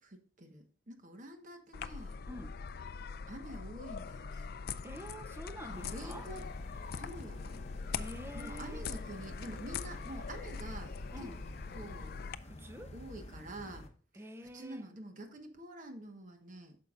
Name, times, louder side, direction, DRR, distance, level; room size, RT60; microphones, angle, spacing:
voice 1, 0.0-2.2 3.3-4.5 5.7-6.5 6.9-7.6 8.3-10.9 11.2-11.3 11.7-12.1 12.9-13.8 14.1-14.3 14.5-16.8, right 1 dB, 45° right, 1.1 m, -47 dB
sound 1, 1.7-12.4, left 5 dB, 55° left, 0.4 m, -42 dB
voice 2, 2.3-2.6 4.8-6.3 7.9-8.9 11.1-11.4 12.4-13.0 14.1-14.9, right 1 dB, 15° right, 0.5 m, -47 dB
sound 2, 5.7-13.9, left 1 dB, 35° left, 0.9 m, -49 dB
9.1 x 6.7 x 2.4 m
head